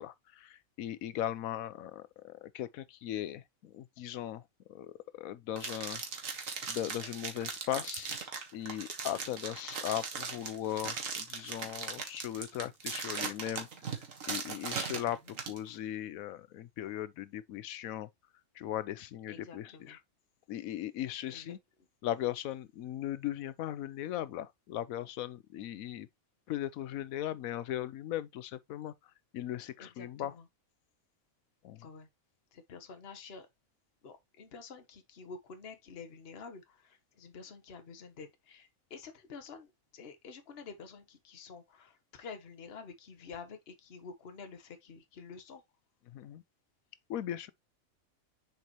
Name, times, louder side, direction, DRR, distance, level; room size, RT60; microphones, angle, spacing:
voice 1, 0.0-4.4 4.7-6.0 6.3-8.1 8.5-13.7 13.9-15.2 15.5-18.1 18.5-20.0 20.5-21.6 22.0-26.1 26.5-28.9 29.3-30.3 31.6-31.9 46.1-46.4 47.1-47.5, left 12 dB, 80° left, 1.1 m, -38 dB
sound 1, 5.6-15.6, right 5 dB, 70° right, 1.8 m, -39 dB
voice 2, 19.3-20.0 21.3-21.5 29.8-30.5 31.8-32.1 32.5-33.5 34.0-45.6, left 5 dB, 50° left, 1.3 m, -49 dB
6.7 x 4.7 x 3.0 m
omnidirectional pair, 1.4 m